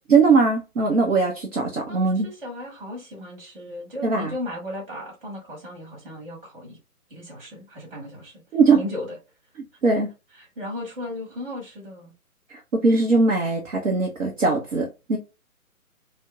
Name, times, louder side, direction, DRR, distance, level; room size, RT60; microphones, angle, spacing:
voice 1, 0.1-2.3 4.0-4.3 8.5-8.8 9.8-10.1 12.5-15.2, right 4 dB, 60° right, 0.8 m, -20 dB
voice 2, 1.9-6.8 7.1-8.4 8.8-9.2 10.3-12.1, left 1 dB, 40° right, 1.7 m, -36 dB
4.3 x 2.2 x 2.3 m
figure-of-eight pair, 140°, 44 cm